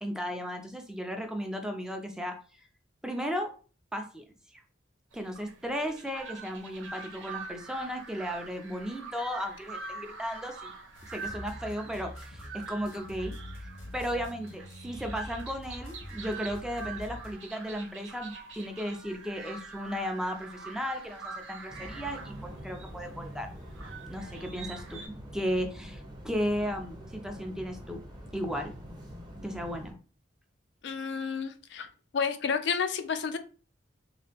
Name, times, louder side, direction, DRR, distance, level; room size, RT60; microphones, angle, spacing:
voice 1, 0.0-2.6 3.0-3.5 3.9-4.2 4.5-4.6 5.1-10.7 11.1-23.5 24.1-25.0 25.3-28.0 28.3-28.7 29.4-29.9, equal, 5° right, 4 dB, 0.4 m, -35 dB
sound 1, 5.1-25.1, right 4 dB, 80° right, 0.9 m, -45 dB
sound 2, 10.9-17.3, left 1 dB, 85° left, 1.0 m, -44 dB
sound 3, 21.7-29.9, equal, 20° right, 0.8 m, -45 dB
voice 2, 30.8-31.9 32.1-33.4, left 6 dB, 60° left, 8 dB, 0.4 m, -30 dB
3.2 x 2.9 x 3.4 m, 0.38 s
head